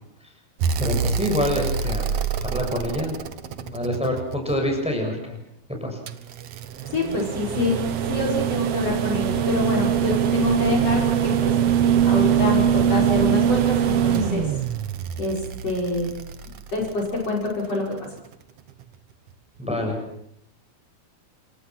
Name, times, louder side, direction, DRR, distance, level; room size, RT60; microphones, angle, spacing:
sound 1, 0.6-4.8 6.1-17.3 18.8-18.9, right 8 dB, 55° right, 1.8 m, -23 dB
voice 1, 0.8-2.0 2.4-3.1 3.6-5.4 5.8-6.0 19.6-20.0, left 1 dB, ahead, 2 dB, 6.8 m, -26 dB
voice 2, 6.9-7.7 8.1-11.5 11.8-14.6 15.2-16.1 16.7-18.2, left 2 dB, 40° left, -1 dB, 6.6 m, -26 dB
28.5 x 25.5 x 6.2 m, 0.74 s
omnidirectional pair, 4.4 m